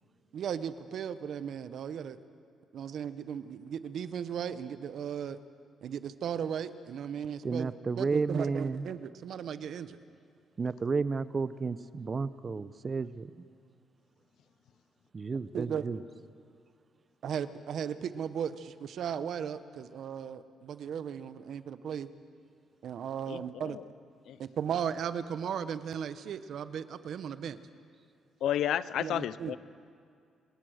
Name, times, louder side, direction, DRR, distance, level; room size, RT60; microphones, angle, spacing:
voice 1, 0.3-2.2 2.7-5.4 5.8-7.7 8.0-10.0 15.5-15.8 17.2-22.1 22.8-23.8 24.4-27.6 29.0-29.6, right 8 dB, 65° right, 13 dB, 1.0 m, -36 dB
voice 2, 7.4-8.9 10.6-13.3 15.1-16.0, right 4 dB, 35° right, 16 dB, 0.7 m, -32 dB
voice 3, 23.3-23.8 24.3-24.4 28.4-29.6, left 11 dB, 75° left, 17 dB, 0.6 m, -32 dB
28.0 x 19.0 x 6.5 m, 2.3 s
cardioid pair, 90°, 0 cm